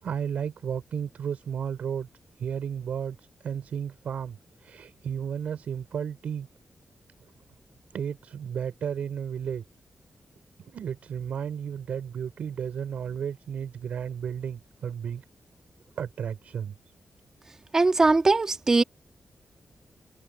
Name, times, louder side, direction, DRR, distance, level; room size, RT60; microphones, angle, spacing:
voice 1, 0.0-2.1 2.4-6.5 7.9-9.6 10.7-15.2 16.0-16.7, right 8 dB, 85° right, 5.8 m, -33 dB
voice 2, 17.7-18.8, right 3 dB, 25° right, 2.2 m, -20 dB
wide cardioid pair, 165°, 2 cm